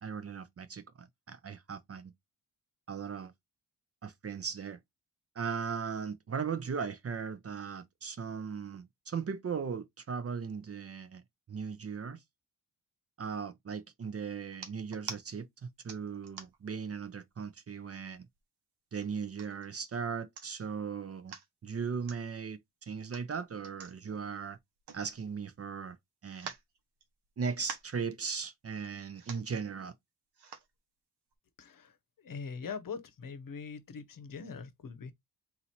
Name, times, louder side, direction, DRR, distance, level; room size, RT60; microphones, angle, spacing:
voice 1, 0.0-2.1 2.9-3.3 4.0-4.8 5.4-11.2 11.5-12.2 13.2-18.2 18.9-21.4 21.6-24.6 24.9-26.0 26.2-26.5 27.4-30.0, right 6 dB, 40° right, 0.5 m, -38 dB
sound 1, 14.5-15.2 15.9-16.7 17.3-17.4 17.7-18.4 19.0-19.7 20.1-20.2 20.4-20.7 21.1-21.5 22.0-22.2 23.0-25.5 25.8-25.9 26.3-27.3 27.5-28.0 28.8-28.9 29.1-29.5 30.3-30.7 31.3-31.4, right 6 dB, 85° right, 1.2 m, -46 dB
voice 2, 31.6-35.1, left 5 dB, 55° left, 0.9 m, -42 dB
4.0 x 3.0 x 4.2 m
wide cardioid pair, 145°, 39 cm